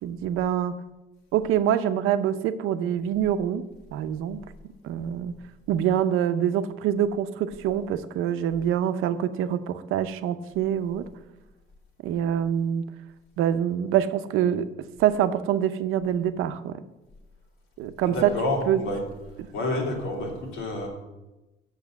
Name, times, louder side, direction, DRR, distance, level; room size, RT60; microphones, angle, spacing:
voice 1, 0.0-0.8 1.3-3.6 3.9-4.4 4.8-5.3 5.7-11.1 12.0-12.9 13.4-14.7 15.0-16.8 17.8-18.3 18.7-18.8, right 10 dB, 80° right, 11 dB, 0.7 m, -25 dB
voice 2, 18.0-19.0 19.5-20.9, left 1 dB, 85° left, -1 dB, 3.1 m, -29 dB
7.3 x 6.6 x 7.8 m, 1.0 s
cardioid pair, 145°, 21 cm